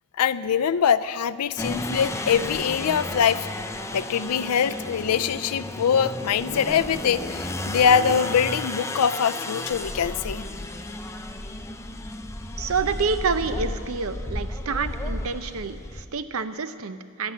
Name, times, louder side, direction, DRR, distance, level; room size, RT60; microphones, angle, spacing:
voice 1, 0.2-3.5 3.9-10.5, left 7 dB, 90° left, 13 dB, 0.5 m, -23 dB
sound 1, 1.6-16.1, left 1 dB, 15° left, 0.6 m, -33 dB
voice 2, 12.6-17.3, right 5 dB, 65° right, 11 dB, 0.7 m, -28 dB
11.5 x 11.5 x 8.4 m, 2.3 s
head